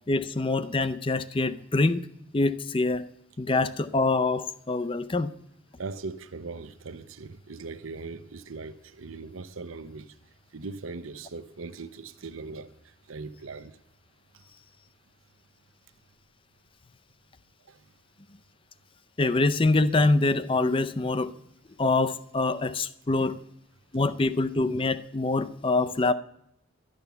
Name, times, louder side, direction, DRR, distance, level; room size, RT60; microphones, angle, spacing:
voice 1, 0.1-2.1 2.3-3.1 3.4-5.3 19.2-21.3 21.8-23.4 23.9-26.1, left 3 dB, 25° left, 0.5 m, -25 dB
voice 2, 5.8-10.1 10.5-12.7 13.1-13.8 17.7-17.8 23.1-23.4, right 3 dB, 80° right, 0.7 m, -40 dB
12.0 x 10.5 x 7.0 m
head